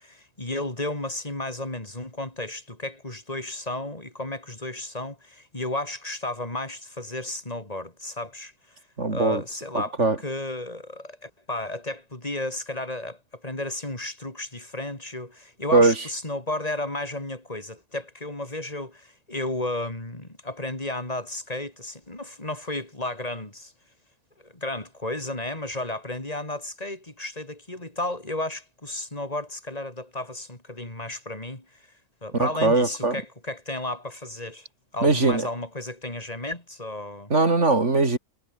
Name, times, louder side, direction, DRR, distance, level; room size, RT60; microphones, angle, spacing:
voice 1, 0.0-8.8 9.1-23.7 24.4-31.9 32.2-34.7 34.9-37.3, left 2 dB, 30° left, 4.7 m, -33 dB
voice 2, 9.0-9.4 10.0-10.2 15.7-15.9 32.4-33.1 35.0-35.4 37.3-38.2, right 3 dB, 75° right, 3.6 m, -20 dB
omnidirectional pair, 1.2 m